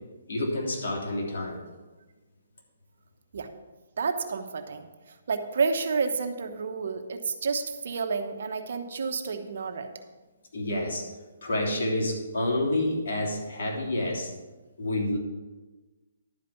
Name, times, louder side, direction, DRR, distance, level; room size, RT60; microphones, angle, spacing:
voice 1, 0.3-1.6 10.5-11.0 11.4-14.3 14.8-15.2, left 1 dB, 60° left, -2 dB, 3.3 m, -28 dB
voice 2, 4.0-9.9, right 5 dB, 65° right, 7 dB, 1.0 m, -30 dB
11.5 x 5.1 x 7.1 m, 1.2 s
hypercardioid pair, 145°, 0 cm